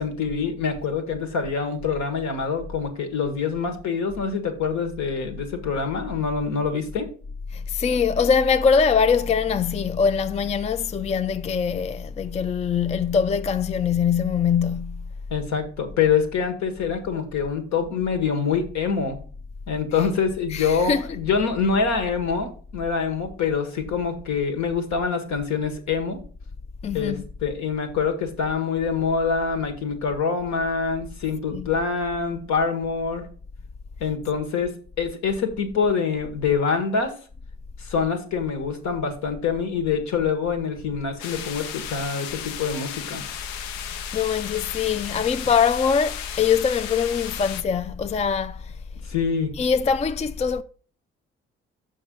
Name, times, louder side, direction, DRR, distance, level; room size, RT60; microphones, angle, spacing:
voice 1, 0.0-7.1 15.3-19.2 19.7-26.2 26.9-33.2 34.0-37.1 37.8-43.2 49.0-49.5, left 5 dB, 65° left, 1.6 m, -25 dB
voice 2, 7.5-15.1 19.9-20.1 20.5-21.2 26.8-27.2 31.5-31.8 43.9-48.7 49.5-50.6, left 6 dB, 20° left, 0.4 m, -23 dB
sound 1, 41.2-47.6, left 9 dB, 80° left, 0.6 m, -35 dB
6.6 x 5.4 x 5.3 m
hypercardioid pair, 45°, 31 cm